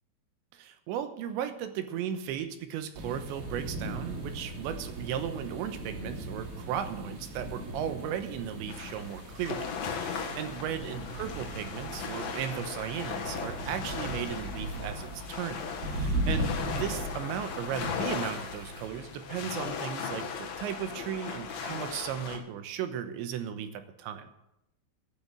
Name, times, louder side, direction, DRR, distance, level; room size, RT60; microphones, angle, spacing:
voice 1, 0.5-9.7 10.0-24.3, right 9 dB, 80° right, 9 dB, 3.2 m, -36 dB
sound 1, 2.9-18.9, right 1 dB, 55° right, 4.5 m, -38 dB
sound 2, 8.7-22.4, left 6 dB, 65° left, 1.7 m, -37 dB
12.5 x 8.6 x 7.6 m, 0.86 s
omnidirectional pair, 5.4 m